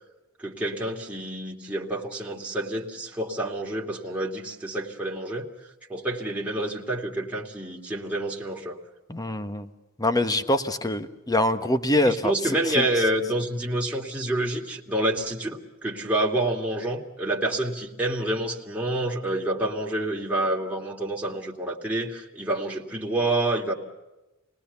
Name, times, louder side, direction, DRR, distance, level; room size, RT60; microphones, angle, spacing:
voice 1, 0.4-5.5 5.9-8.8 12.0-23.7, right 1 dB, 5° right, -3 dB, 2.8 m, -28 dB
voice 2, 9.1-9.7 10.0-12.3 12.7-12.8, left 1 dB, 20° left, 10 dB, 1.3 m, -24 dB
28.5 x 19.5 x 7.0 m, 1.0 s
head